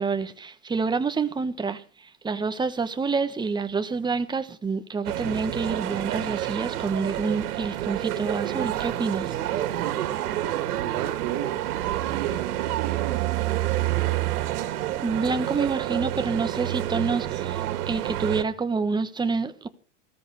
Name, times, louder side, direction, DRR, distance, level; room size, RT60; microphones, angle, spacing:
voice 1, 0.0-1.8 2.2-9.4 15.0-19.7, right 4 dB, 10° right, 1.2 m, -27 dB
sound 1, 5.0-18.4, right 13 dB, 75° right, 2.6 m, -28 dB
voice 2, 9.8-13.5, right 11 dB, 50° right, 3.8 m, -36 dB
15.5 x 14.0 x 4.9 m
supercardioid pair, 135°, 46 cm